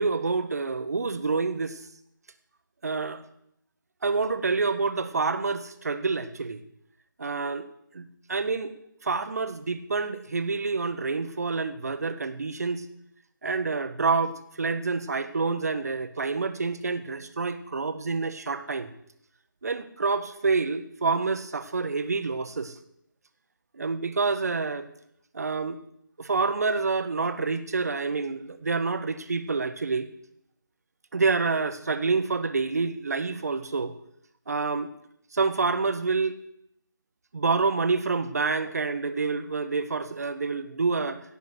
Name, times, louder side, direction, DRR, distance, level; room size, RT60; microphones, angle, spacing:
voice 1, 0.0-1.8 2.8-3.2 4.0-6.6 7.2-7.7 7.9-8.7 9.0-12.8 13.4-18.9 19.6-22.8 23.7-24.9 25.3-25.8 26.2-30.1 31.1-33.9 34.5-34.9 35.3-36.4 37.3-41.2, right 4 dB, 50° right, 11 dB, 1.4 m, -27 dB
17.0 x 7.4 x 8.1 m, 0.73 s
figure-of-eight pair, 160°, 11 cm